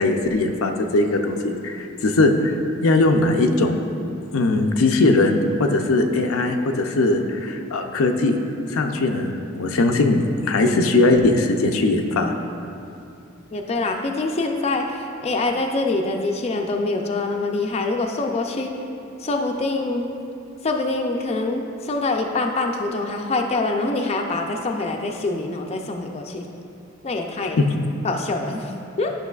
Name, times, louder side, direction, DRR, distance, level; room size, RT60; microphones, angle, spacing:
voice 1, 0.0-2.5 2.8-3.8 4.3-8.4 8.7-12.3, left 2 dB, 85° left, 4 dB, 0.5 m, -20 dB
voice 2, 13.5-18.7 19.2-20.1 20.6-26.5 27.0-27.6 28.0-29.1, left 2 dB, 30° left, 3 dB, 0.4 m, -25 dB
10.5 x 5.9 x 2.4 m, 2.6 s
head